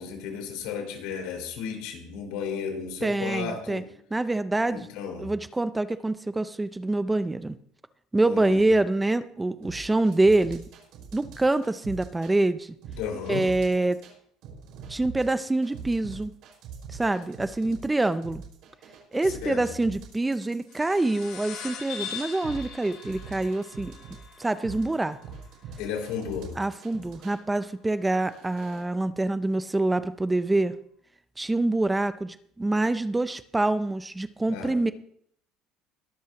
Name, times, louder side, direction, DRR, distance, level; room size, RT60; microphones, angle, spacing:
voice 1, 0.0-3.8 4.7-5.3 8.2-8.6 13.0-13.5 19.2-19.6 25.8-26.5 34.5-34.9, left 6 dB, 80° left, 2 dB, 4.7 m, -34 dB
voice 2, 3.0-3.8 4.1-4.9 5.2-7.6 8.1-10.6 11.1-12.8 13.3-14.0 14.9-16.3 16.9-18.4 19.1-23.9 24.4-25.2 26.6-30.8 31.4-34.9, right 2 dB, 5° right, 12 dB, 0.4 m, -26 dB
sound 1, 9.6-12.3 12.8-14.1 14.4-27.4 28.0-28.8, right 6 dB, 55° right, 5.1 m, -44 dB
sound 2, 20.7-25.6, left 7 dB, 55° left, 6.6 m, -41 dB
21.5 x 13.0 x 2.9 m, 0.66 s
cardioid pair, 175°, 0 cm